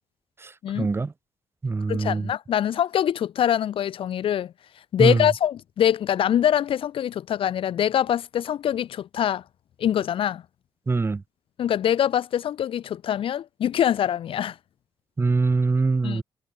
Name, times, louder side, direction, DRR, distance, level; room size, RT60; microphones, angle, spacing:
voice 1, 0.7-1.1 1.6-2.3 5.0-5.2 10.9-11.2 15.2-16.2, right 3 dB, 25° right, 2.7 m, -23 dB
voice 2, 1.9-4.5 4.9-9.4 9.8-10.4 11.6-14.6 16.0-16.2, left 10 dB, 60° left, 0.7 m, -24 dB
cardioid pair, 125°, 10 cm